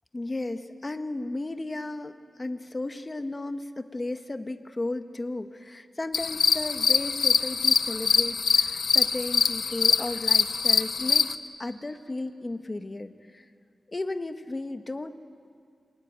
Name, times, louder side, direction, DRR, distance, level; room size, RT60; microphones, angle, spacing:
voice 1, 0.1-13.4 13.9-15.1, left 2 dB, 25° left, 8 dB, 1.2 m, -34 dB
sound 1, 6.1-11.4, left 5 dB, 80° left, 0.8 m, -23 dB
28.0 x 20.5 x 9.2 m, 2.4 s
wide cardioid pair, 105°, 0 cm